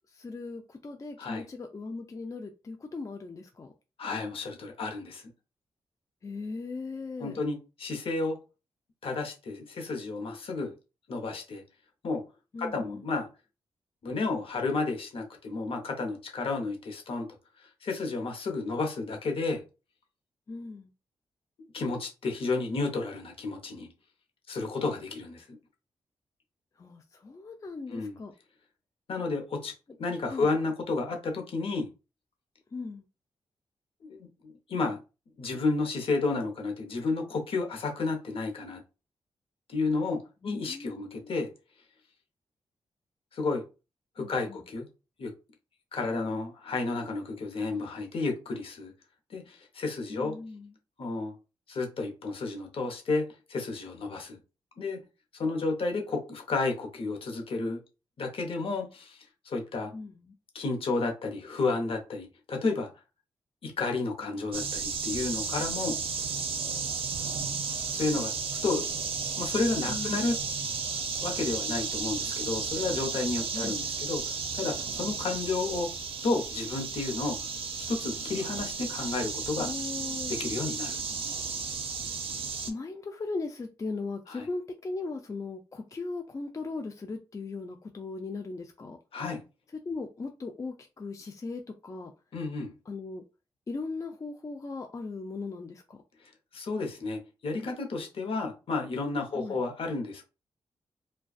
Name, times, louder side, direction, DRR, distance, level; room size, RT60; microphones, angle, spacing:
voice 1, 0.1-3.7 6.2-7.4 12.5-13.0 20.5-20.9 26.8-28.3 30.3-30.5 32.7-33.1 40.4-41.4 44.2-44.6 50.1-50.7 59.9-60.4 69.9-70.2 73.5-73.8 79.5-80.3 82.7-89.0 89.8-92.1 92.9-93.2 93.7-96.0 99.3-99.6, left 3 dB, 30° left, 0.4 m, -38 dB
voice 2, 4.0-5.2 7.2-8.4 9.0-10.7 11.1-11.6 12.0-12.2 12.6-13.3 14.0-17.3 17.6-19.6 21.7-23.9 24.5-25.6 27.9-28.2 29.1-29.7 30.0-31.9 34.1-35.0 35.4-38.8 39.7-41.5 43.3-43.6 44.2-44.9 45.2-45.3 45.9-48.9 49.3-50.4 51.0-51.3 51.7-54.4 54.8-55.0 55.3-57.8 58.2-59.2 59.4-59.9 60.5-62.9 63.6-66.0 67.9-68.3 68.6-68.9 69.4-70.3 71.2-74.2 74.5-75.9 76.2-77.4 77.8-79.7 80.3-81.0 84.3-84.4 89.1-89.4 92.3-92.7 96.5-100.2, left 3 dB, 65° left, 0.8 m, -31 dB
sound 1, 64.5-82.7, right 5 dB, 65° right, 0.5 m, -33 dB
2.4 x 2.2 x 2.3 m
cardioid pair, 55°, 10 cm